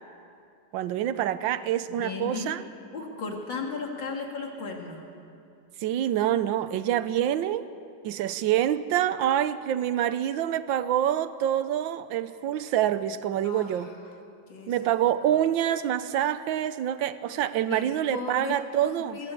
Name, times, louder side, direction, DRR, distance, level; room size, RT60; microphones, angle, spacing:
voice 1, 0.7-2.6 5.8-7.7 8.0-13.9 14.7-19.2, right 11 dB, 85° right, 13 dB, 1.5 m, -26 dB
voice 2, 1.9-2.5 2.9-5.0 13.4-13.9 14.5-14.9 17.7-18.6 18.8-19.3, left 4 dB, 80° left, 1 dB, 2.9 m, -36 dB
23.0 x 16.0 x 8.4 m, 2.6 s
omnidirectional pair, 2.0 m